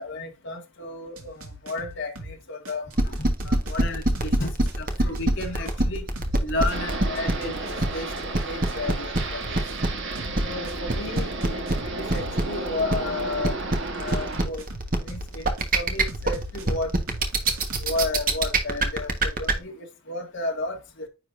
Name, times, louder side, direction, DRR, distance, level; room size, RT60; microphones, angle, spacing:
voice 1, 0.0-6.1 6.4-9.6 10.4-13.5 13.9-14.6 15.0-16.9 17.8-21.1, left 2 dB, 55° left, 1.7 m, -33 dB
sound 1, 1.2-2.3 2.6-6.4 6.7-10.3 10.7-12.4 14.1-15.7 16.1-18.0, right 1 dB, 75° right, 2.1 m, -40 dB
sound 2, 2.9-19.5, right 2 dB, 40° right, 1.3 m, -23 dB
sound 3, 6.7-14.5, right 3 dB, 55° right, 1.5 m, -33 dB
9.7 x 4.0 x 2.6 m
head